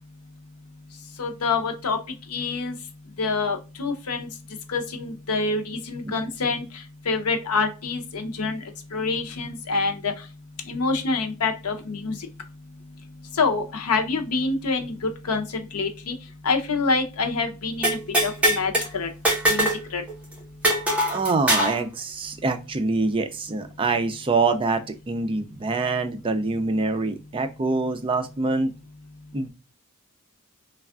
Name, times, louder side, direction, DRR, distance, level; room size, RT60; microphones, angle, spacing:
voice 1, 1.2-2.0 2.3-2.7 3.2-4.3 4.7-6.6 7.1-8.6 8.9-10.1 10.7-12.1 13.4-14.9 15.3-15.4 15.7-16.1 16.4-19.1 19.5-20.0, left 4 dB, 85° left, 5 dB, 0.7 m, -26 dB
sound 1, 17.8-18.9 19.3-19.8 20.1-20.2 20.6-21.8, right 1 dB, 5° right, 1.0 m, -21 dB
voice 2, 21.1-28.7 29.3-29.5, right 3 dB, 25° right, 8 dB, 0.3 m, -25 dB
3.3 x 2.3 x 2.2 m, 0.30 s
head